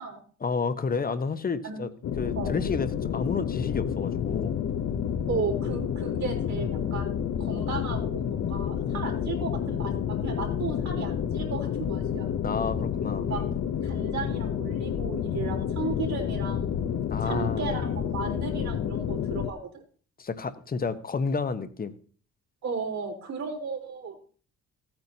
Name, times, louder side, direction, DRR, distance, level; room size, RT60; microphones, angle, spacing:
voice 1, 0.4-1.9 2.2-4.6 12.4-13.3 17.1-17.8 20.2-21.9, left 5 dB, 30° left, 11 dB, 0.9 m, -30 dB
sound 1, 2.0-19.5, left 8 dB, 60° left, 0.8 m, -29 dB
voice 2, 5.3-7.1 7.4-9.9 10.2-12.3 13.3-13.4 13.8-16.7 17.2-19.8 22.6-24.2, right 5 dB, 65° right, 0 dB, 3.7 m, -35 dB
14.5 x 8.9 x 2.8 m, 0.42 s
cardioid pair, 90°, 30 cm